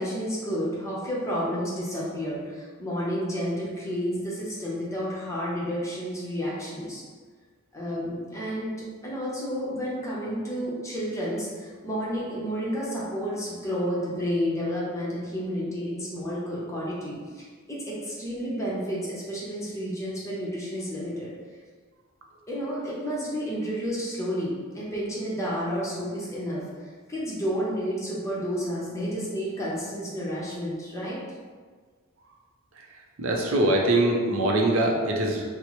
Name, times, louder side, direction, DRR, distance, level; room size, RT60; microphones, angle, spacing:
voice 1, 0.0-7.0 7.7-8.7 9.0-21.3 22.5-26.6 27.1-31.2, equal, 15° left, -7 dB, 0.7 m, -31 dB
voice 2, 33.2-35.4, right 1 dB, 65° right, 0 dB, 0.5 m, -23 dB
4.2 x 2.0 x 3.0 m, 1.5 s
head